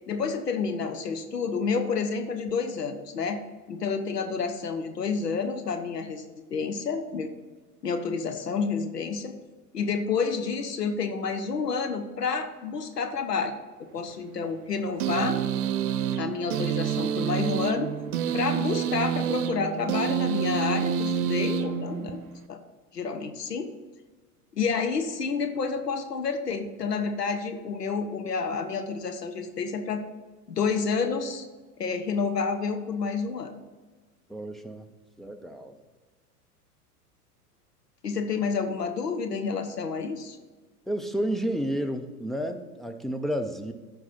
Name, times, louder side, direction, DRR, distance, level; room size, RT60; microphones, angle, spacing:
voice 1, 0.1-3.4 3.7-6.2 6.5-7.3 7.8-9.3 9.7-13.5 13.9-15.4 16.2-17.9 18.3-22.2 22.5-22.6 22.9-23.7 24.5-30.0 30.5-31.4 31.8-33.5 38.0-40.4, left 5 dB, 90° left, 7 dB, 1.0 m, -29 dB
sound 1, 15.0-22.4, right 8 dB, 65° right, 0.8 m, -28 dB
voice 2, 34.3-34.9 35.2-35.8 40.9-43.7, equal, ahead, 6 dB, 0.5 m, -31 dB
14.0 x 5.3 x 4.2 m, 1.4 s
hypercardioid pair, 95°, 46 cm